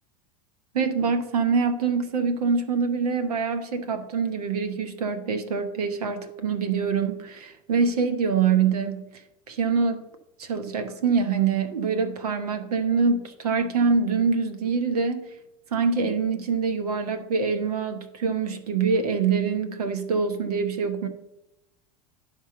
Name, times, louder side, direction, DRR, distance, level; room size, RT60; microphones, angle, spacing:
voice 1, 0.7-9.0 9.5-10.1 10.4-15.4 15.7-21.1, right 5 dB, 90° right, 9 dB, 1.2 m, -25 dB
11.0 x 3.7 x 6.7 m, 0.89 s
supercardioid pair, 110°, 19 cm